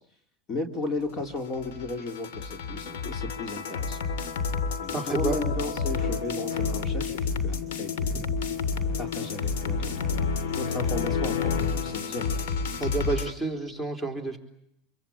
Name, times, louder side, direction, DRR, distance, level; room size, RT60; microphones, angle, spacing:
voice 1, 0.5-4.0 4.8-8.2 9.0-12.3, left 3 dB, 35° left, 6 dB, 3.6 m, -35 dB
sound 1, 1.4-13.3, left 5 dB, 85° left, 2.8 m, -29 dB
voice 2, 4.9-5.4 8.1-8.2 12.8-14.4, right 3 dB, 5° left, 6 dB, 3.8 m, -30 dB
27.0 x 23.5 x 8.6 m, 0.76 s
supercardioid pair, 125°, 0 cm